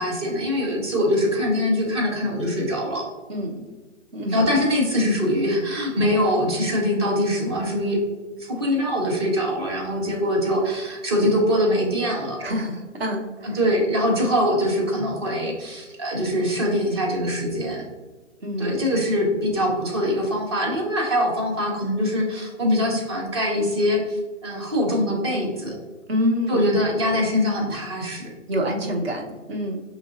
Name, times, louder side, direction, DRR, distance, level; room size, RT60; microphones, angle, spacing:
voice 1, 0.0-3.1 4.3-8.0 8.4-12.5 13.4-17.8 18.6-25.8 26.5-28.3, equal, 20° right, 0 dB, 0.6 m, -23 dB
voice 2, 3.3-3.7 4.1-4.4 12.4-13.6 18.4-18.8 26.1-26.8 28.5-29.8, equal, 50° right, 1 dB, 1.0 m, -26 dB
6.0 x 3.0 x 2.5 m, 1.3 s
hypercardioid pair, 145°, 38 cm